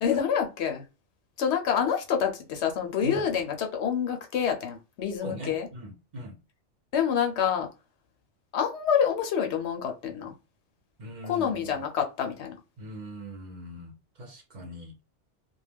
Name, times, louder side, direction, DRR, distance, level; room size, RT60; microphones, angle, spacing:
voice 1, 0.0-0.8 1.4-5.7 6.9-7.7 8.5-10.3 11.2-12.6, left 8 dB, 75° left, 0.9 m, -27 dB
voice 2, 5.2-6.4 11.0-11.8 12.8-14.9, right 1 dB, 45° right, 0.8 m, -40 dB
2.2 x 2.1 x 3.3 m
omnidirectional pair, 1.2 m